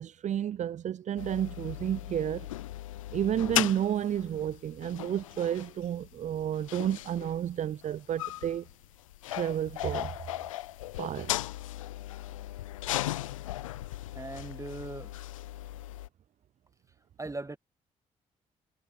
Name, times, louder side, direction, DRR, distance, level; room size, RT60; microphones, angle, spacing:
voice 1, 0.0-2.5 3.1-8.7 9.3-10.1 11.0-11.4, right 10 dB, 45° right, 0.5 m, -31 dB
sound 1, 1.2-16.1, left 15 dB, 85° left, 0.6 m, -37 dB
voice 2, 14.1-15.1 17.2-17.6, right 2 dB, 20° right, 2.0 m, -39 dB
hypercardioid pair, 40°, 16 cm